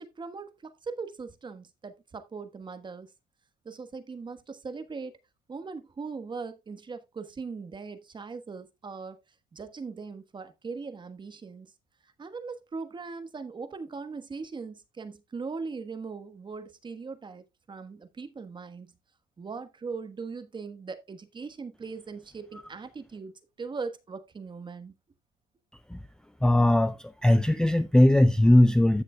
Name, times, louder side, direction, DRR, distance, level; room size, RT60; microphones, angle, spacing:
voice 1, 0.0-3.1 3.6-5.2 5.5-9.2 9.5-11.7 12.2-18.9 19.4-24.9, right 4 dB, 25° right, 1.3 m, -40 dB
voice 2, 26.4-29.0, left 1 dB, 5° left, 0.4 m, -20 dB
15.0 x 6.3 x 2.3 m
cardioid pair, 110°, 17 cm